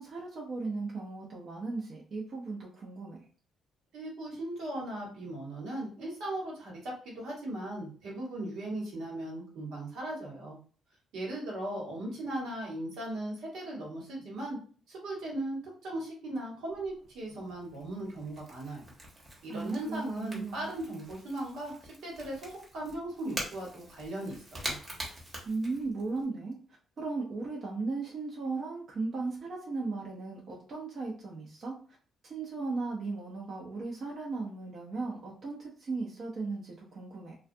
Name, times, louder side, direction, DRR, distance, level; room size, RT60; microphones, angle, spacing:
voice 1, 0.0-3.2 19.5-20.7 25.4-26.6 27.0-31.8 32.2-37.4, right 3 dB, 50° right, -3 dB, 0.7 m, -36 dB
voice 2, 3.9-10.6 11.1-14.6 14.9-18.9 19.4-24.8, right 1 dB, 85° right, -4 dB, 1.2 m, -38 dB
Crackle / Crack, 16.7-26.2, right 1 dB, 35° right, 1.0 m, -45 dB
2.4 x 2.2 x 2.6 m, 0.41 s
cardioid pair, 90°, 0 cm